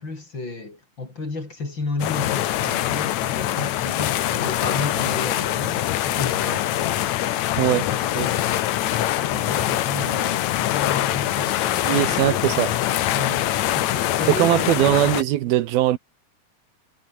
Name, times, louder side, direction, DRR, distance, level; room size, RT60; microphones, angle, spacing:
voice 1, 0.0-6.9 7.6-8.6 9.2-12.4 13.1-14.8, left 3 dB, 30° left, 5.3 m, -32 dB
sound 1, 2.0-15.2, left 13 dB, 70° left, 1.8 m, -24 dB
voice 2, 7.6-7.9 8.2-8.3 11.8-12.7 14.3-16.0, right 14 dB, 75° right, 2.8 m, -20 dB
omnidirectional pair, 4.4 m